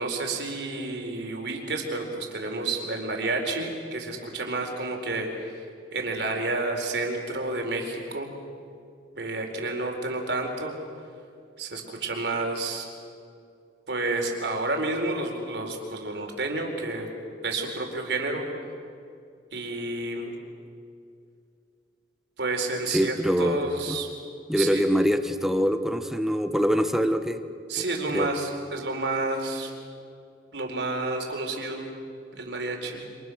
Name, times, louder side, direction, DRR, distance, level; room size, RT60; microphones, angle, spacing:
voice 1, 0.0-5.6 5.9-8.3 9.1-10.7 11.6-12.9 13.9-17.1 17.4-18.4 19.5-20.3 22.4-24.1 24.6-24.8 27.7-29.7 30.5-31.9 32.4-33.0, right 2 dB, 70° right, 2 dB, 4.4 m, -30 dB
voice 2, 22.9-23.6 23.9-24.0 24.5-27.4 28.1-28.3, equal, ahead, 8 dB, 1.3 m, -24 dB
29.0 x 27.0 x 6.4 m, 2.4 s
head